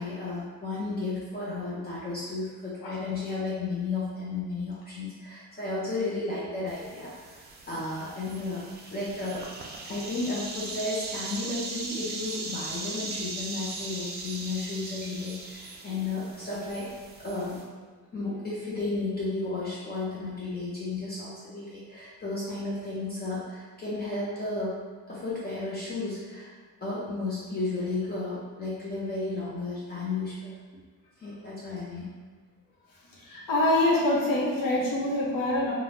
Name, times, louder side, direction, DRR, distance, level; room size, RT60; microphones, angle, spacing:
voice 1, 0.0-7.4 7.7-9.4 9.8-16.9 17.2-17.6 18.1-24.7 25.1-26.5 26.8-30.5 31.2-32.1, left 3 dB, 30° left, -8 dB, 0.6 m, -33 dB
sound 1, 6.7-17.6, right 3 dB, 30° right, 0.4 m, -39 dB
voice 2, 33.1-35.7, left 1 dB, 75° left, -4 dB, 0.9 m, -25 dB
2.6 x 2.3 x 3.3 m, 1.5 s
cardioid pair, 125°, 35 cm